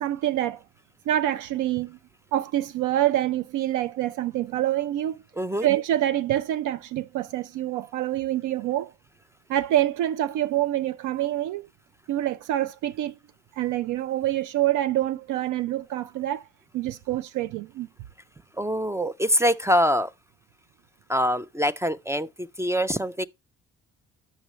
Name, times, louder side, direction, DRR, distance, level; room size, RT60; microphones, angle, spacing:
voice 1, 0.0-0.6 1.1-2.0 2.3-5.2 5.6-8.9 9.5-11.7 12.1-13.2 13.6-16.5 16.7-17.9, right 13 dB, 80° right, 0.5 m, -26 dB
voice 2, 5.4-5.7 18.6-20.1 21.1-23.3, equal, 10° right, 0.3 m, -24 dB
8.0 x 6.4 x 3.0 m
cardioid pair, 90°, 30 cm